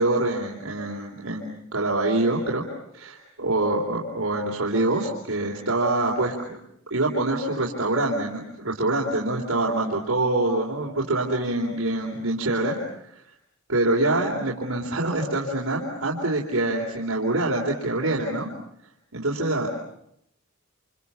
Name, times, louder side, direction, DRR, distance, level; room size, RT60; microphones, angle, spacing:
voice 1, 0.0-2.6 2.9-6.6 6.9-13.2 13.7-18.5 19.1-19.7, right 2 dB, 85° right, -2 dB, 3.8 m, -25 dB
28.5 x 28.0 x 7.0 m, 0.75 s
head